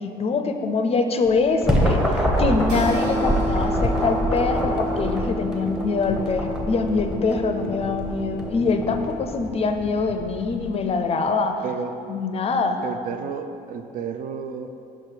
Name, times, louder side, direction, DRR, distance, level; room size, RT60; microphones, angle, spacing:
voice 1, 0.0-11.6 12.1-12.8, left 4 dB, 35° left, 6 dB, 0.5 m, -24 dB
sound 1, 1.2-10.7, equal, 5° right, 0.9 m, -26 dB
sound 2, 2.7-9.1, equal, 85° right, 1.3 m, -31 dB
voice 2, 11.6-11.9 12.8-14.7, right 6 dB, 55° right, 8 dB, 0.4 m, -31 dB
6.0 x 4.6 x 4.9 m, 2.7 s
cardioid pair, 110°, 17 cm